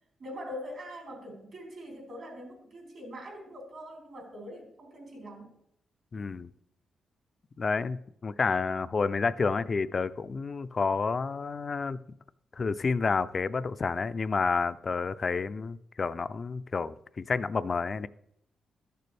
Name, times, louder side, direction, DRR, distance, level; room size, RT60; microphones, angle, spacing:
voice 1, 0.2-5.6, equal, 65° right, -1 dB, 3.8 m, -43 dB
voice 2, 6.1-6.5 7.6-12.0 12.6-18.1, left 4 dB, 45° left, 15 dB, 0.4 m, -30 dB
13.5 x 6.8 x 3.3 m, 0.76 s
cardioid pair, 80°, 0 cm